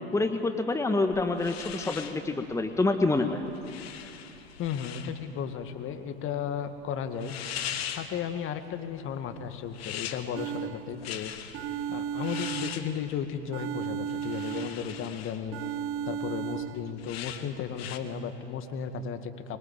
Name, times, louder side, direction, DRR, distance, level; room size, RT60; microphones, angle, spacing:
voice 1, 0.1-3.4, left 2 dB, 10° left, 7 dB, 1.6 m, -27 dB
sound 1, 1.1-18.0, left 9 dB, 70° left, 1.8 m, -42 dB
voice 2, 4.6-7.3 7.9-11.6 11.9-15.6 16.1-19.6, left 8 dB, 40° left, 8 dB, 2.0 m, -35 dB
sound 2, 10.3-11.1 11.5-13.1 13.5-15.1 15.5-16.9, right 9 dB, 40° right, 0.9 m, -35 dB
25.0 x 22.5 x 9.0 m, 2.7 s
hypercardioid pair, 85°, 32 cm